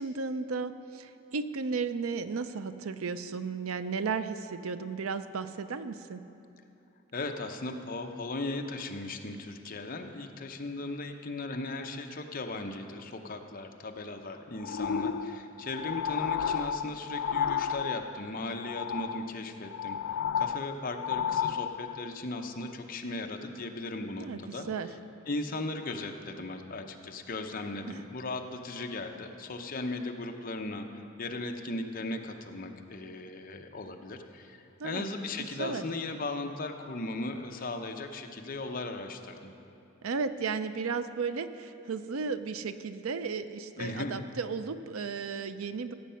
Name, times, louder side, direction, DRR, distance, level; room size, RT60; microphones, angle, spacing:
voice 1, 0.0-6.2 24.2-24.9 27.9-28.0 34.8-35.0 35.6-35.8 40.0-45.9, right 5 dB, 90° right, 12 dB, 0.5 m, -34 dB
voice 2, 7.1-20.0 20.4-24.7 25.3-39.5 43.8-44.2, left 2 dB, 40° left, 4 dB, 0.8 m, -37 dB
sound 1, 14.6-18.3 18.6-19.3 19.6-22.1 22.7-22.8, left 7 dB, 80° left, 0.4 m, -32 dB
16.0 x 7.4 x 5.7 m, 2.7 s
head